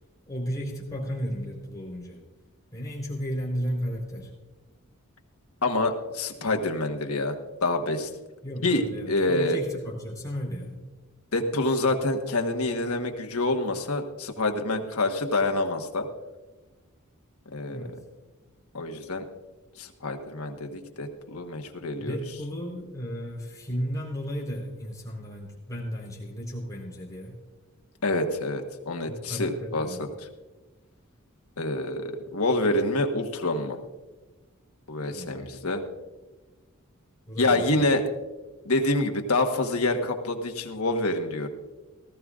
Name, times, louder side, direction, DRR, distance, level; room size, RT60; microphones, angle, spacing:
voice 1, 0.3-2.2 2.7-4.3 8.4-10.8 17.7-17.9 22.0-27.4 29.1-30.1 35.1-35.6 37.3-37.9, equal, 15° left, -4 dB, 4.1 m, -34 dB
voice 2, 5.6-8.1 8.6-9.6 11.3-16.1 17.5-17.8 18.7-19.2 19.8-22.2 28.0-30.1 31.6-33.8 34.9-35.8 37.4-38.0 38.6-41.5, left 2 dB, 80° left, 4 dB, 1.4 m, -27 dB
18.5 x 14.5 x 2.5 m, 1.2 s
head